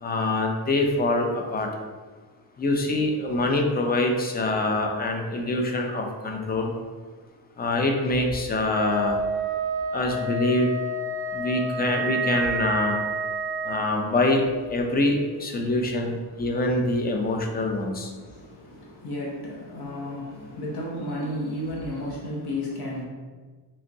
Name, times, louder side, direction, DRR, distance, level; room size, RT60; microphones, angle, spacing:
voice 1, 0.0-1.7 2.6-6.7 7.6-9.2 9.9-10.7 11.3-13.0 13.6-14.4 14.7-18.1, left 2 dB, 25° left, 2 dB, 0.3 m, -25 dB
Wind instrument woodwind instrument, 8.7-14.0, right 2 dB, 25° right, 0.6 m, -29 dB
voice 2, 18.2-23.0, left 1 dB, 55° left, -3 dB, 0.7 m, -33 dB
3.4 x 2.9 x 2.6 m, 1.4 s
cardioid pair, 120°, 46 cm